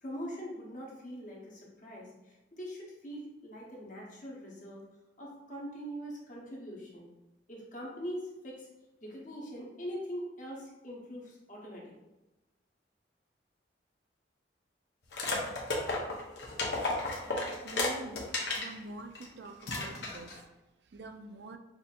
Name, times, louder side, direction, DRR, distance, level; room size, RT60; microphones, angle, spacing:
voice 1, 0.0-4.8 5.2-7.1 7.5-8.7 9.0-11.9, equal, 45° left, -3 dB, 1.1 m, -42 dB
sound 1, 15.1-18.7 19.1-19.3 19.6-20.4, left 2 dB, 65° left, 0.9 m, -33 dB
voice 2, 17.6-18.2 18.6-20.3 20.9-21.6, right 2 dB, 65° right, 7 dB, 0.4 m, -45 dB
6.0 x 2.8 x 2.5 m, 1.0 s
head